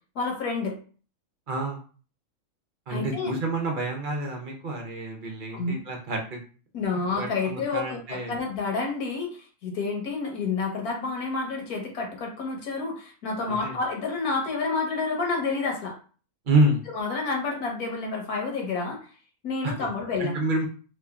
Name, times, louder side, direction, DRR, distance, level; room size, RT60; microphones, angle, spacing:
voice 1, 0.1-0.8 2.9-3.3 5.5-5.8 6.7-15.9 16.9-19.1 19.4-20.4, left 4 dB, 75° left, 1 dB, 1.4 m, -29 dB
voice 2, 1.5-1.8 2.9-6.4 7.2-8.4 13.4-13.8 16.5-16.8 19.6-19.7 20.2-20.7, right 2 dB, 45° right, 1 dB, 0.7 m, -28 dB
3.1 x 2.5 x 3.4 m, 0.39 s
omnidirectional pair, 1.6 m